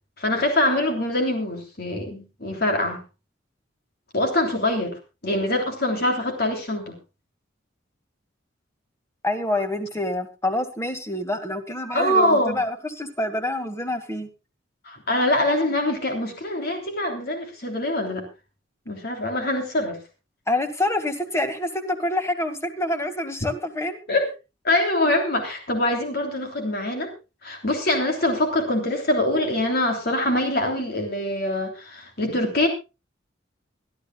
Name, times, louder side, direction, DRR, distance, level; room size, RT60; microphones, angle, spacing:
voice 1, 0.2-3.0 4.1-6.9 11.9-12.6 14.8-18.2 18.9-20.0 24.1-24.3 24.6-27.1 27.4-32.7, left 1 dB, 55° left, 4 dB, 3.3 m, -24 dB
voice 2, 9.2-14.3 20.5-24.0, left 1 dB, 15° left, 8 dB, 1.9 m, -27 dB
24.0 x 12.0 x 2.3 m, 0.28 s
head